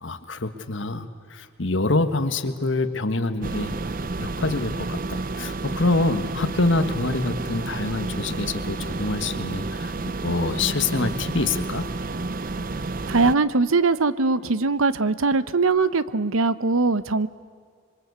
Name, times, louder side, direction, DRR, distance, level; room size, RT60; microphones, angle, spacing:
voice 1, 0.0-3.8 4.2-9.9 10.2-11.9, left 2 dB, 60° left, 9 dB, 1.5 m, -26 dB
sound 1, 3.4-13.4, right 3 dB, 40° right, 0.6 m, -30 dB
voice 2, 13.1-17.3, right 3 dB, 85° right, 15 dB, 0.9 m, -21 dB
26.5 x 23.0 x 8.1 m, 2.1 s
head